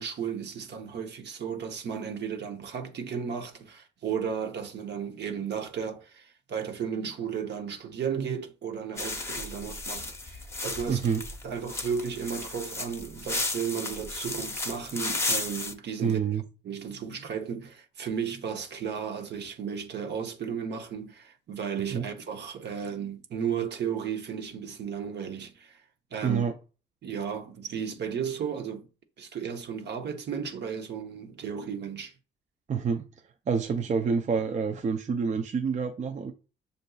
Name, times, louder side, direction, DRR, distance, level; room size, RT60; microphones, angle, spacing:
voice 1, 0.0-11.1 11.4-16.2 16.6-25.8 26.1-26.4 27.0-28.8 29.2-32.1, right 7 dB, 60° right, 0.8 m, -34 dB
sound 1, 9.0-15.7, left 2 dB, 15° left, 0.7 m, -34 dB
voice 2, 10.9-11.2 16.0-16.4 21.9-22.0 26.2-26.5 32.7-33.0 33.5-36.3, right 6 dB, 35° right, 0.5 m, -27 dB
6.7 x 2.6 x 2.3 m
cardioid pair, 90°, 20 cm